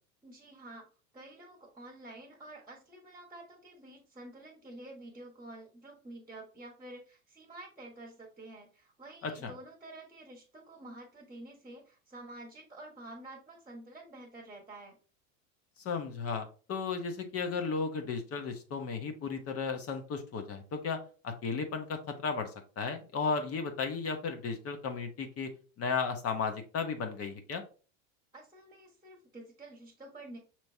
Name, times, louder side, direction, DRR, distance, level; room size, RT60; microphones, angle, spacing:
voice 1, 0.2-0.9 1.1-15.0 28.3-30.4, right 2 dB, 10° right, 0 dB, 1.2 m, -49 dB
voice 2, 9.2-9.5 15.8-25.5 25.8-27.6, left 5 dB, 35° left, 5 dB, 0.9 m, -35 dB
5.8 x 3.0 x 2.7 m, 0.36 s
hypercardioid pair, 95°, 39 cm